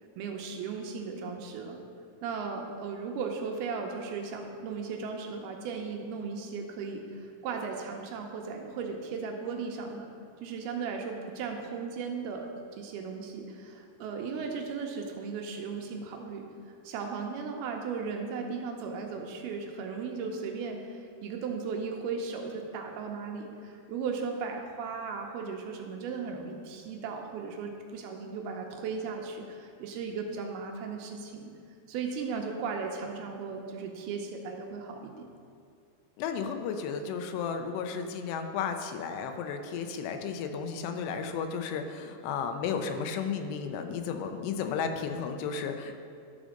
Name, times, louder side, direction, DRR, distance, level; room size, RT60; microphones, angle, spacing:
voice 1, 0.2-1.8 2.2-10.1 10.4-12.5 12.8-16.5 16.8-31.5 31.9-35.3, right 5 dB, 80° right, 2 dB, 2.6 m, -36 dB
voice 2, 36.2-46.0, left 6 dB, 90° left, 6 dB, 2.9 m, -33 dB
12.0 x 5.1 x 6.4 m, 2.3 s
omnidirectional pair, 4.7 m